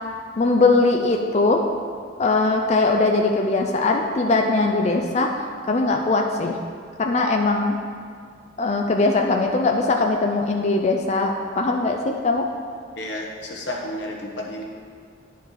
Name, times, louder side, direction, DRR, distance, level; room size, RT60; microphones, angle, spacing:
voice 1, 0.4-1.6 2.2-5.3 5.7-6.6 7.0-7.8 8.6-12.5, left 3 dB, 35° left, 2 dB, 0.4 m, -20 dB
voice 2, 13.0-14.6, left 1 dB, 65° left, -2 dB, 1.2 m, -31 dB
10.0 x 4.6 x 4.0 m, 2.1 s
head